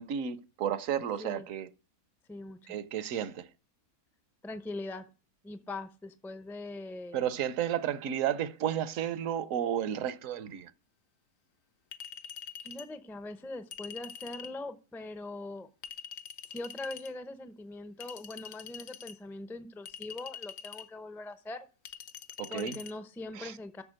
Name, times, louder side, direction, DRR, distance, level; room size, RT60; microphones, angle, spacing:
voice 1, 0.0-1.7 2.7-3.5 7.1-10.7 22.4-22.8 23.4-23.5, right 10 dB, 65° right, 1.0 m, -32 dB
voice 2, 2.3-2.8 4.4-5.0 5.4-7.3 12.6-15.7 16.5-21.7 22.5-23.8, left 2 dB, 5° left, 0.3 m, -41 dB
Chink clink, 11.9-12.9 13.7-14.6 15.8-17.1 18.0-19.2 19.9-20.9 21.9-22.9, left 7 dB, 65° left, 1.0 m, -45 dB
8.6 x 6.7 x 6.4 m
omnidirectional pair, 1.6 m